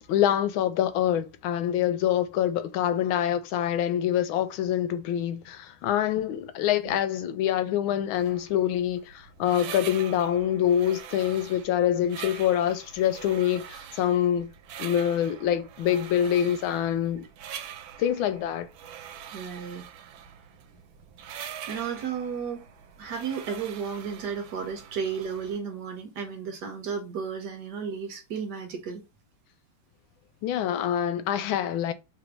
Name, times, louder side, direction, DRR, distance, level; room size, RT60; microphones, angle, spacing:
voice 1, 0.1-14.5 14.8-17.3 18.0-18.7 30.4-31.9, left 10 dB, 85° left, 1.4 m, -25 dB
sound 1, 8.1-25.6, right 9 dB, 85° right, 1.4 m, -44 dB
voice 2, 19.3-19.9 21.7-22.7 23.0-29.0, right 6 dB, 65° right, 1.3 m, -33 dB
3.3 x 2.6 x 4.5 m
omnidirectional pair, 2.2 m